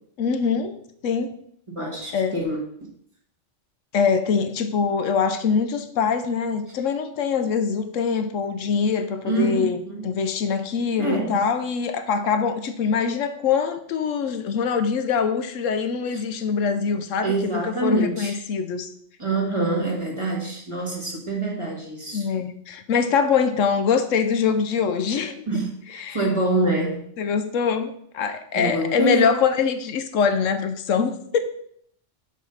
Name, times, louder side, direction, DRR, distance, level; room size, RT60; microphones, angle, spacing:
voice 1, 0.2-1.3 2.1-2.4 3.9-18.9 22.1-25.6 25.9-26.2 27.2-31.4, left 6 dB, 80° left, 8 dB, 1.0 m, -24 dB
voice 2, 1.7-2.6 9.2-10.0 11.0-11.4 17.2-18.4 19.2-22.3 25.5-27.0 28.5-29.3, right 2 dB, 25° right, -1 dB, 1.6 m, -25 dB
7.2 x 3.6 x 5.7 m, 0.67 s
omnidirectional pair, 1.3 m